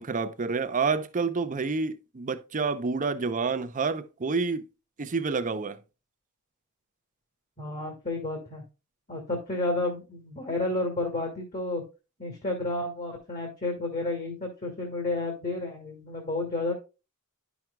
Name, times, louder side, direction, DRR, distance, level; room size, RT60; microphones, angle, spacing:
voice 1, 0.0-4.7 5.0-5.8, right 4 dB, 35° right, 0.6 m, -28 dB
voice 2, 7.6-8.6 9.1-11.8 12.2-16.7, left 2 dB, 40° left, 1.8 m, -31 dB
10.0 x 6.0 x 2.2 m
head